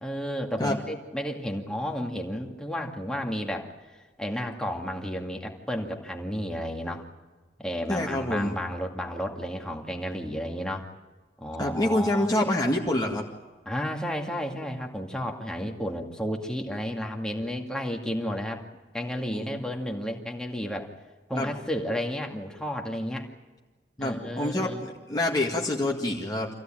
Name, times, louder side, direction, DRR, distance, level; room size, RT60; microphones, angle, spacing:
voice 1, 0.0-3.7 4.2-7.0 7.6-10.8 11.4-12.3 13.7-18.6 18.9-20.9 21.3-23.3 24.0-24.9, equal, 5° left, 1 dB, 2.1 m, -32 dB
voice 2, 7.9-8.5 11.6-13.2 19.3-19.5 21.3-21.5 24.0-26.5, left 1 dB, 20° left, -1 dB, 1.9 m, -26 dB
26.5 x 16.0 x 8.9 m, 1.3 s
head